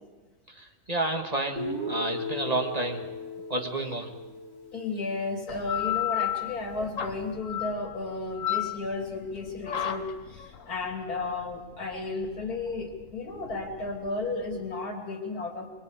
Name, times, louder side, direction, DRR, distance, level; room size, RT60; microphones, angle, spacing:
voice 1, 0.6-3.0 3.5-4.1, right 2 dB, 25° right, 4 dB, 1.7 m, -30 dB
Guitar, 1.6-5.5, left 1 dB, 45° left, 4.0 m, -37 dB
voice 2, 4.7-15.7, left 3 dB, 80° left, 3 dB, 3.4 m, -33 dB
sound 1, 5.5-14.7, left 11 dB, 60° left, 1.5 m, -34 dB
26.5 x 23.5 x 5.0 m, 1.2 s
omnidirectional pair, 1.6 m